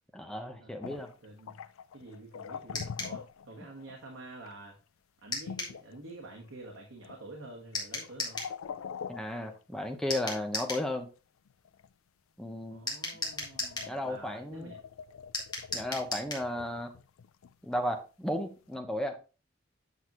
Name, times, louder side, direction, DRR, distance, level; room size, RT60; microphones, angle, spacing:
voice 1, 0.1-1.1 9.1-11.1 12.4-12.8 13.9-14.7 15.7-16.9 17.6-19.2, left 1 dB, 5° left, 4 dB, 0.7 m, -34 dB
sound 1, 0.8-4.0 4.4-4.6 5.5-6.7 7.0-7.4 7.7-10.1 11.5-11.9 12.8-12.9 13.2-17.8 18.7-18.8, left 6 dB, 70° left, 0.4 m, -45 dB
voice 2, 1.2-1.6 1.9-4.8 5.2-8.4 12.6-14.8, right 2 dB, 70° right, 0 dB, 1.3 m, -48 dB
sound 2, 2.7-3.2 5.3-5.8 7.7-8.5 10.1-10.9 12.9-13.9 15.3-16.5, left 2 dB, 20° left, 1.6 m, -36 dB
8.1 x 6.0 x 3.0 m, 0.34 s
head